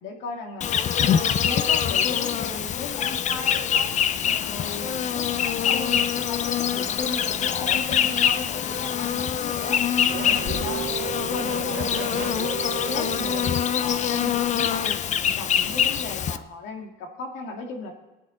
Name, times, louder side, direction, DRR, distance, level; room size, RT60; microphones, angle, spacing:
voice 1, 0.0-0.7 0.9-4.0 4.4-9.8 10.1-10.9 11.3-13.4 13.8-14.9 15.2-17.9, left 3 dB, 85° left, 3 dB, 2.1 m, -36 dB
Insect, 0.6-16.4, left 8 dB, 40° left, 0.5 m, -24 dB
Race car auto racing / Accelerating revving vroom, 8.9-14.5, right 12 dB, 85° right, 0.7 m, -36 dB
19.5 x 9.4 x 3.8 m, 1.1 s
cardioid pair, 135°, 19 cm